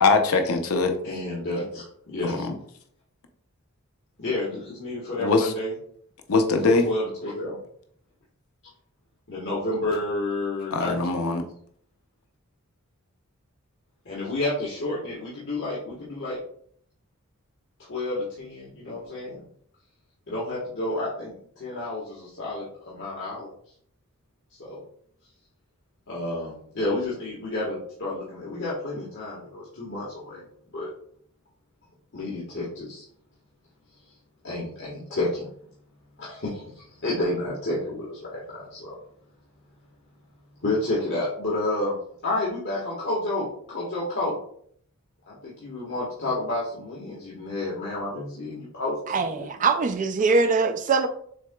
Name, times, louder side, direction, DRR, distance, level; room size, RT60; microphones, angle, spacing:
voice 1, 0.0-0.9 2.2-2.5 5.2-5.5 6.3-6.9 10.7-11.4, left 3 dB, 75° left, 0.6 m, -21 dB
voice 2, 1.0-2.4 4.2-5.7 6.6-7.6 9.3-11.2 14.0-16.4 17.9-19.4 20.3-23.5 24.5-24.8 26.1-30.4 30.7-30.9 32.1-33.0 34.4-35.5 36.2-38.9 40.6-42.0 42.2-44.4 45.3-49.5, left 2 dB, 60° left, 1.3 m, -30 dB
voice 3, 49.1-51.1, right 4 dB, 35° right, 0.3 m, -22 dB
6.3 x 3.7 x 2.2 m
head